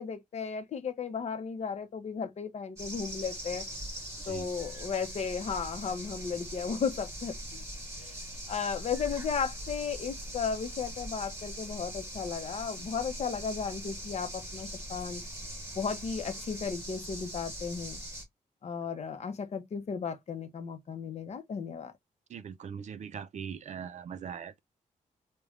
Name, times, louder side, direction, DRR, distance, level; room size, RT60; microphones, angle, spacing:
voice 1, 0.0-3.6 4.3-7.6 8.0-8.2 8.5-15.2 15.7-18.0 18.6-21.9, left 6 dB, 55° left, 0.6 m, -35 dB
sound 1, 2.8-18.2, right 1 dB, 20° right, 1.3 m, -41 dB
voice 2, 22.3-24.6, right 7 dB, 60° right, 0.4 m, -41 dB
3.2 x 2.2 x 2.4 m
wide cardioid pair, 125°, 14 cm